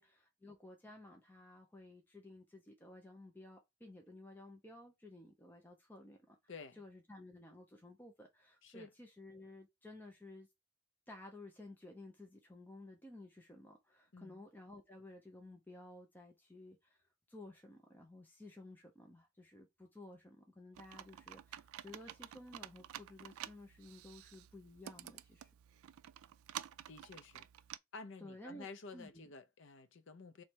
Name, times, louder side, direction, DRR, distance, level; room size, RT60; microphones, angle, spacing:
voice 1, 0.0-6.4 6.7-10.5 11.1-25.5 28.2-29.3, left 2 dB, 10° left, 0.6 m, -55 dB
Computer keyboard, 20.7-27.8, right 11 dB, 80° right, 0.3 m, -51 dB
voice 2, 26.9-27.5 27.9-30.4, left 4 dB, 60° left, 0.6 m, -51 dB
3.2 x 3.1 x 4.5 m
head